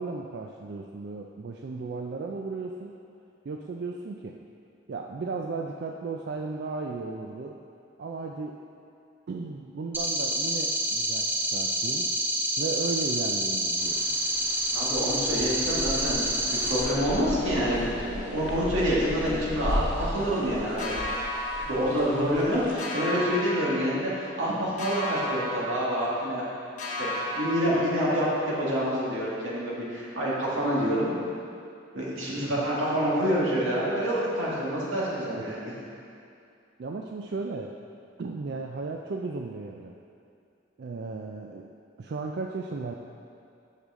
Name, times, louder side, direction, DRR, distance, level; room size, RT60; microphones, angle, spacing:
voice 1, 0.0-3.0 3.4-4.4 4.9-7.6 8.0-8.6 9.3-12.1 12.6-14.2 32.4-32.7 35.3-35.4 36.8-37.8 38.2-40.0 40.8-41.7 42.0-42.9, right 4 dB, 55° right, 1 dB, 0.3 m, -35 dB
sound 1, 9.9-16.8, right 1 dB, 10° right, 0.6 m, -28 dB
sound 2, 13.8-22.7, left 1 dB, 75° left, 1.2 m, -36 dB
voice 2, 14.7-21.0 21.6-26.4 27.0-31.2 31.9-35.7, equal, 85° right, -6 dB, 2.0 m, -27 dB
sound 3, 20.8-22.5 22.8-24.4 24.8-26.5 26.8-28.5, left 1 dB, 40° left, 0.9 m, -34 dB
8.2 x 6.5 x 3.7 m, 2.5 s
head